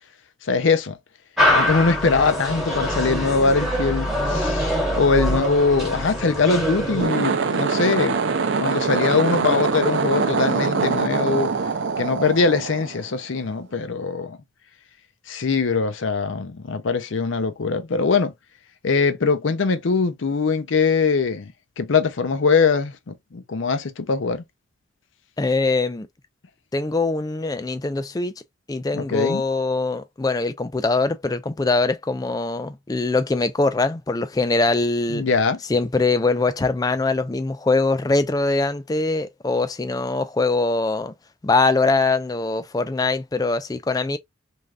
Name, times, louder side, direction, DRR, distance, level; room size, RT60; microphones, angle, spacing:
voice 1, 0.4-1.0 1.5-8.2 8.6-11.5 12.0-14.4 15.3-18.3 18.8-21.5 21.8-24.4 28.9-29.4 35.1-35.6, left 4 dB, 70° left, 0.5 m, -22 dB
sound 1, 1.4-7.1, equal, ahead, 1.1 m, -23 dB
sound 2, 6.9-13.4, right 4 dB, 65° right, 0.5 m, -23 dB
voice 2, 25.4-26.1 26.7-28.3 28.7-35.2 35.7-41.1 41.4-44.2, left 3 dB, 20° left, 0.3 m, -22 dB
3.2 x 2.6 x 2.3 m
head